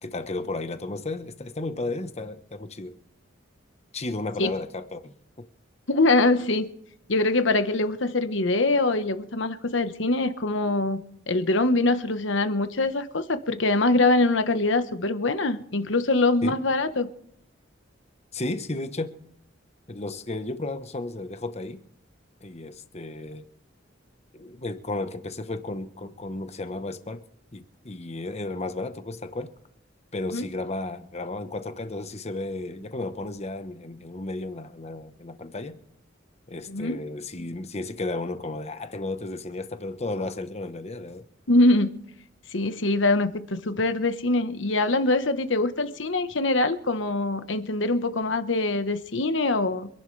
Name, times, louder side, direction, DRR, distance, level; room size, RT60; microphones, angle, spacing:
voice 1, 0.0-2.9 3.9-5.4 16.4-16.6 18.3-19.1 19.9-21.8 22.4-23.5 24.3-27.2 27.5-29.5 30.1-35.8 36.5-41.2, left 2 dB, 35° left, 1.1 m, -33 dB
voice 2, 5.9-6.7 7.1-11.0 11.3-17.1 30.3-30.4 36.7-37.0 41.5-42.0 42.5-49.9, left 2 dB, 70° left, 1.2 m, -23 dB
26.5 x 11.0 x 3.3 m
head